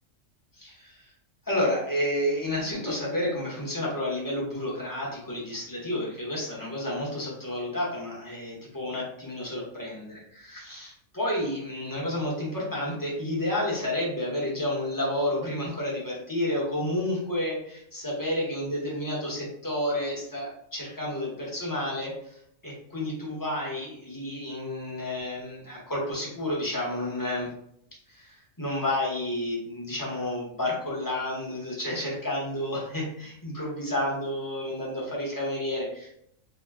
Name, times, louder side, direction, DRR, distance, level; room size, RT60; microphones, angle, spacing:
voice 1, 0.6-1.1 1.4-22.4 22.6-27.5 28.1-36.1, left 1 dB, 20° left, -5 dB, 0.7 m, -30 dB
2.8 x 2.1 x 3.4 m, 0.71 s
omnidirectional pair, 1.4 m